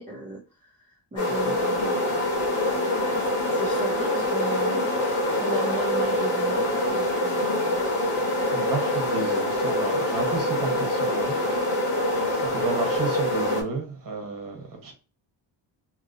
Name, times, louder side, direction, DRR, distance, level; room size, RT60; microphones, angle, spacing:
voice 1, 0.0-2.6 3.1-5.0 5.4-7.9, right 1 dB, 15° right, 0.7 m, -38 dB
sound 1, 1.2-13.6, left 1 dB, 80° left, 1.4 m, -25 dB
voice 2, 8.5-11.9 12.3-14.9, right 4 dB, 40° right, 1.2 m, -32 dB
2.9 x 2.7 x 2.5 m
cardioid pair, 115°, 49 cm